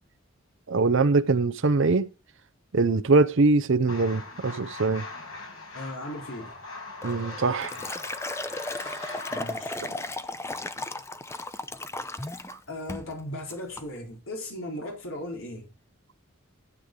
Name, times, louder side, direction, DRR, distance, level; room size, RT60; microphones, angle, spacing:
voice 1, 0.7-2.1 2.7-5.0 7.0-7.7 9.0-9.2 12.5-12.6, right 3 dB, 65° right, 0.7 m, -23 dB
sound 1, 3.9-9.6, left 3 dB, 85° left, 5.0 m, -40 dB
voice 2, 5.7-6.5 9.3-9.8 12.7-15.7, left 1 dB, 70° left, 4.1 m, -37 dB
Liquid, 7.0-12.6 12.9-13.1 13.5-13.9, left 2 dB, 15° left, 0.7 m, -35 dB
12.5 x 8.2 x 3.8 m
head